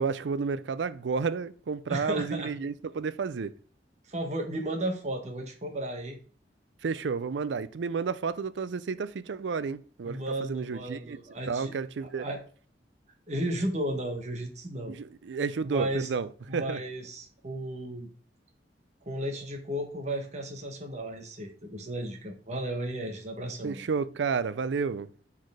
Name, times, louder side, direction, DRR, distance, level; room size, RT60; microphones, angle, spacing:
voice 1, 0.0-3.5 6.8-10.2 10.5-11.2 11.5-12.2 14.9-16.8 23.6-25.1, right 5 dB, 85° right, 0.4 m, -31 dB
voice 2, 1.9-2.5 4.1-6.2 10.0-12.4 13.3-15.0 15.6-16.1 16.5-18.1 19.0-23.8, right 1 dB, 40° right, 1.1 m, -34 dB
6.3 x 4.2 x 4.9 m
head